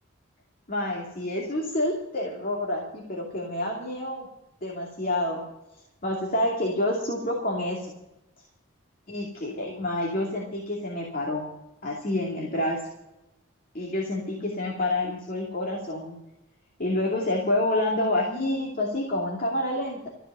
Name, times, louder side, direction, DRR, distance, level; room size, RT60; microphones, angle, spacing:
voice 1, 0.7-4.3 4.6-5.4 6.0-7.9 9.1-11.5 11.8-12.8 13.7-16.2 16.8-20.1, left 1 dB, 45° left, -2 dB, 2.7 m, -28 dB
14.0 x 8.3 x 9.1 m, 0.92 s
head